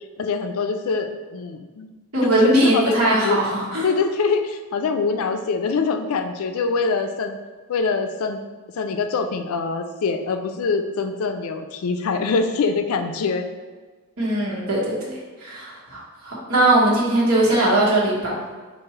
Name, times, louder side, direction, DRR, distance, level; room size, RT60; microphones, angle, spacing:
voice 1, 0.2-1.9 2.2-3.4 3.8-7.4 7.7-8.4 8.8-13.5, left 4 dB, 75° left, 7 dB, 0.4 m, -24 dB
voice 2, 2.1-3.9 14.2-18.4, right 1 dB, 85° right, -6 dB, 1.3 m, -20 dB
4.7 x 2.5 x 3.1 m, 1.4 s
head